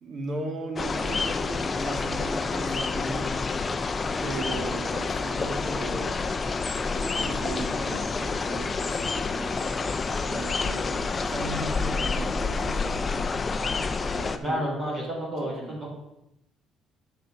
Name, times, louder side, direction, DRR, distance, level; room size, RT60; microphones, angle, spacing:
voice 1, 0.0-3.4 4.2-6.4 7.0-9.6 10.3-13.1 14.1-14.7 15.4-15.8, right 2 dB, 45° right, 4 dB, 1.8 m, -37 dB
sound 1, 0.8-14.4, left 4 dB, 20° left, 0.5 m, -28 dB
voice 2, 14.4-15.9, equal, 25° right, -4 dB, 3.9 m, -30 dB
8.3 x 6.7 x 5.8 m, 0.86 s
cardioid pair, 155°, 0 cm